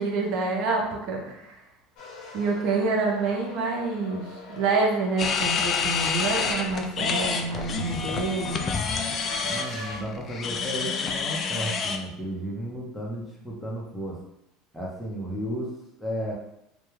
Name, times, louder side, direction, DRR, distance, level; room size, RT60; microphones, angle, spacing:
voice 1, 0.0-1.6 2.3-8.6, right 3 dB, 65° right, 0 dB, 0.6 m, -27 dB
sound 1, 2.0-10.0, left 2 dB, 55° left, 0.8 m, -42 dB
sound 2, 5.2-12.0, left 5 dB, 40° left, 0.3 m, -28 dB
voice 2, 9.4-14.2 14.7-15.7 16.0-16.3, equal, ahead, -4 dB, 0.7 m, -33 dB
2.2 x 2.2 x 3.1 m, 0.80 s
supercardioid pair, 105°, 0 cm